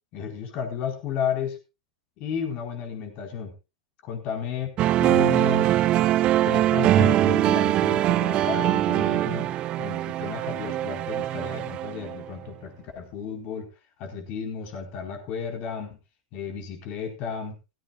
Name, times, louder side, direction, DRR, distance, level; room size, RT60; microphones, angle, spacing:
voice 1, 0.1-1.6 2.2-3.5 4.0-4.7 5.0-5.7 6.4-13.7 14.0-16.0 16.3-17.6, left 7 dB, 45° left, 4 dB, 4.5 m, -33 dB
sound 1, 4.8-12.3, right 13 dB, 35° right, 0.8 m, -22 dB
16.5 x 15.0 x 2.4 m, 0.28 s
hypercardioid pair, 95°, 3 cm